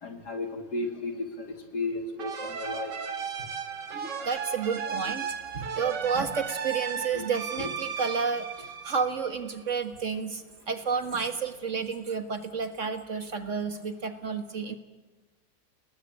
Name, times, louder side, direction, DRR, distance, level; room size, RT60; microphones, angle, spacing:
voice 1, 0.0-2.9 6.2-6.3 7.1-7.2 7.6-7.7, left 2 dB, 65° left, 5 dB, 3.3 m, -34 dB
sound 1, 2.2-9.6, right 7 dB, 80° right, 2.5 m, -35 dB
voice 2, 3.9-14.7, right 5 dB, 45° right, 8 dB, 1.9 m, -31 dB
29.5 x 19.5 x 8.4 m, 1.2 s
omnidirectional pair, 1.8 m